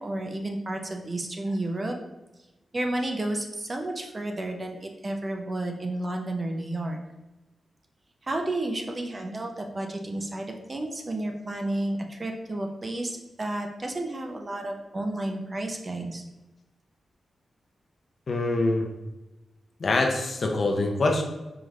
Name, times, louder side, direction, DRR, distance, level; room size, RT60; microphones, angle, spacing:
voice 1, 0.0-1.9 2.7-7.0 8.2-16.2, right 1 dB, 25° right, 3 dB, 0.4 m, -31 dB
voice 2, 18.3-18.9 19.8-21.2, left 2 dB, 45° left, 2 dB, 0.5 m, -24 dB
4.8 x 2.5 x 3.1 m, 1.0 s
wide cardioid pair, 155°, 0 cm